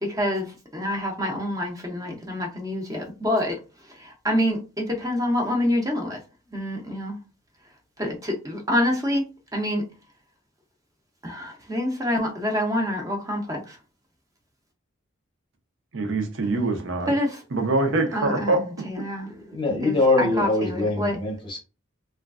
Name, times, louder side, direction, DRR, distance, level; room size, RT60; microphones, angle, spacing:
voice 1, 0.0-3.6 3.9-6.2 6.5-7.2 8.0-9.3 9.5-9.8 11.2-13.8 17.1-17.4 18.1-19.3 19.8-21.2, left 1 dB, 15° right, 0.6 m, -27 dB
voice 2, 15.9-17.1 17.5-18.7 19.0-19.1, right 2 dB, 70° right, 0.7 m, -24 dB
voice 3, 19.3-21.6, left 2 dB, 25° left, 0.7 m, -23 dB
3.1 x 2.3 x 2.4 m
head